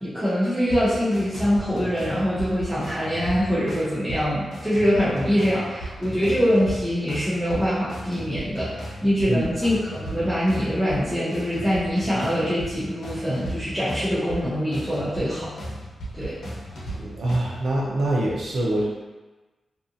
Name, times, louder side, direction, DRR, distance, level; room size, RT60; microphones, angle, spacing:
voice 1, 0.0-15.5 16.1-16.4, equal, 10° right, -11 dB, 0.6 m, -24 dB
sound 1, 0.7-17.4, right 1 dB, 85° left, 0.7 m, -36 dB
voice 2, 16.9-18.8, right 1 dB, 75° right, -4 dB, 0.6 m, -24 dB
2.7 x 2.4 x 2.5 m, 1.2 s
wide cardioid pair, 140°, 0 cm